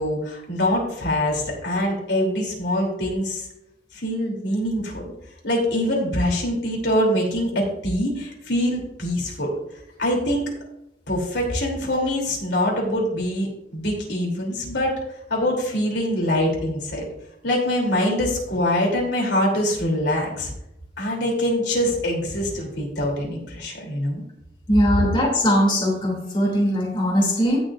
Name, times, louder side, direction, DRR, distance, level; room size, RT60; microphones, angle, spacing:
voice 1, 0.0-3.5 3.9-5.0 5.4-9.5 10.0-10.5 11.1-14.9 15.3-17.0 17.4-20.5 21.0-24.2 25.0-25.1, left 1 dB, 70° left, -2 dB, 3.0 m, -24 dB
voice 2, 24.7-27.6, equal, 25° left, -3 dB, 2.6 m, -20 dB
16.5 x 6.3 x 2.5 m, 0.84 s
head